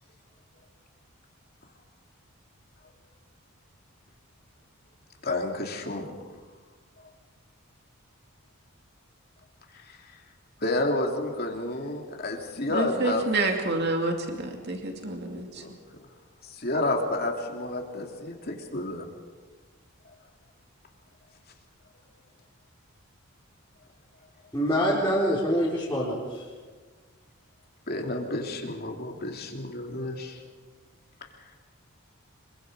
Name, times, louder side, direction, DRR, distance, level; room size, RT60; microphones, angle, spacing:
voice 1, 5.2-6.1 9.7-10.0 10.6-13.2 15.6-15.7 16.4-19.1 27.9-30.4, left 2 dB, 45° left, 1 dB, 3.0 m, -30 dB
voice 2, 12.7-15.6, right 2 dB, 50° right, 3 dB, 2.5 m, -28 dB
voice 3, 24.5-26.4, equal, 10° left, -9 dB, 4.3 m, -25 dB
26.5 x 23.0 x 5.1 m, 1.4 s
head